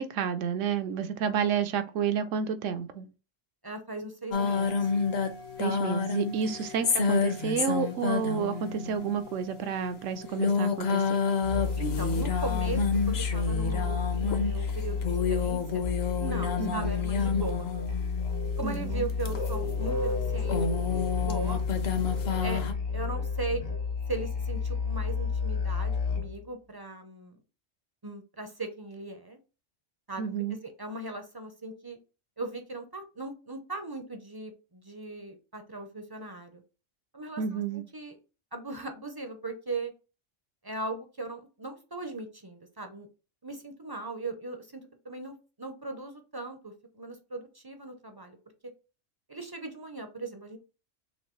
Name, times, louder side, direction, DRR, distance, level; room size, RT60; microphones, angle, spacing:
voice 1, 0.0-3.1 5.6-11.2 16.6-16.9 18.6-19.1 30.2-30.6 37.4-37.8, right 7 dB, 80° right, 1.0 m, -30 dB
voice 2, 3.6-4.9 6.4-6.6 11.8-12.8 13.1-15.8 16.2-17.7 18.6-20.0 20.3-20.6 20.9-21.6 22.4-22.6 22.9-23.6 24.1-27.4 28.0-29.4 30.1-30.3 30.6-32.0 32.4-36.6 37.1-37.6 37.9-38.2 38.5-39.9 40.6-43.1 43.4-48.4 49.3-50.6, right 2 dB, 30° right, 0.4 m, -38 dB
sound 1, 4.3-18.4 19.1-22.7, left 5 dB, 60° left, 1.0 m, -30 dB
Musical instrument, 11.4-26.4, left 5 dB, 35° left, 0.6 m, -31 dB
6.4 x 2.6 x 3.0 m
omnidirectional pair, 1.3 m